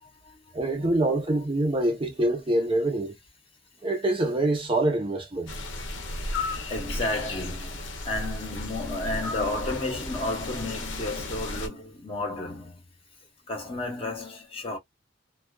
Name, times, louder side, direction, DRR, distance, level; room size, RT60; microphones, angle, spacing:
voice 1, 0.0-1.0 6.7-12.8 13.5-14.8, left 2 dB, 30° left, 0.9 m, -33 dB
voice 2, 0.5-3.1 3.8-5.5, right 1 dB, 25° right, 0.8 m, -25 dB
sound 1, 5.5-11.7, left 2 dB, 65° left, 0.7 m, -34 dB
2.3 x 2.3 x 2.2 m
head